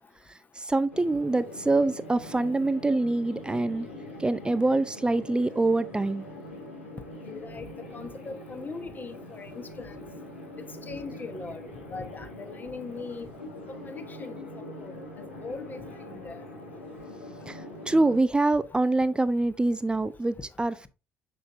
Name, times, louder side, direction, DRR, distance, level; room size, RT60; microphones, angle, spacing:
voice 1, 0.6-3.9 4.2-6.3 17.5-20.9, right 2 dB, 15° right, 0.5 m, -25 dB
sound 1, 0.9-18.2, left 1 dB, 85° left, 1.5 m, -43 dB
voice 2, 7.2-7.6 7.9-9.9 10.9-11.6 11.9-13.3 13.8-14.4 14.8-14.9 15.4-15.8 16.1-16.4, left 4 dB, 30° left, 1.1 m, -40 dB
6.7 x 6.4 x 2.6 m
figure-of-eight pair, 50°, 6 cm